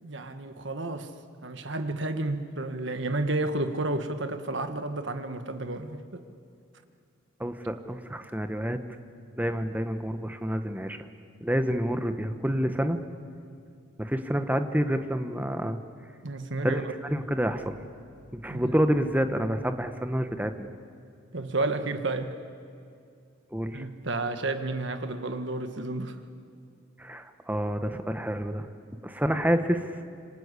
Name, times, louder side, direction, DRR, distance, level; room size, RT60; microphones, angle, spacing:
voice 1, 0.0-1.1 1.4-6.2 16.2-16.9 18.5-18.7 21.3-22.4 23.7-26.2, right 2 dB, 60° right, 1.6 m, -31 dB
voice 2, 7.4-8.8 9.4-11.1 11.4-13.0 14.0-15.8 16.6-17.8 18.3-20.7 23.5-23.8 27.0-28.7 29.0-29.9, equal, 10° right, 1.1 m, -28 dB
27.0 x 25.5 x 8.3 m
head